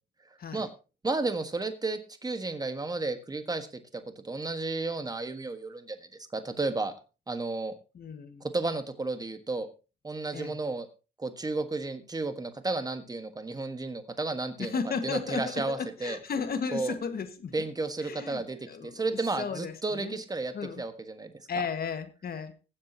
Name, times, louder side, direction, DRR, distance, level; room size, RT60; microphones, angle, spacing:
voice 1, 1.0-3.7 3.9-6.0 6.3-6.9 7.3-7.7 8.4-9.7 10.0-10.9 11.2-16.2 16.7-17.0 17.5-21.6, right 3 dB, 20° right, 1.5 m, -33 dB
voice 2, 7.9-8.5 10.3-10.6 14.6-17.7 18.0-20.2 20.5-20.8 21.5-22.5, left 5 dB, 50° left, 1.7 m, -35 dB
22.5 x 7.5 x 2.9 m
cardioid pair, 90°, 20 cm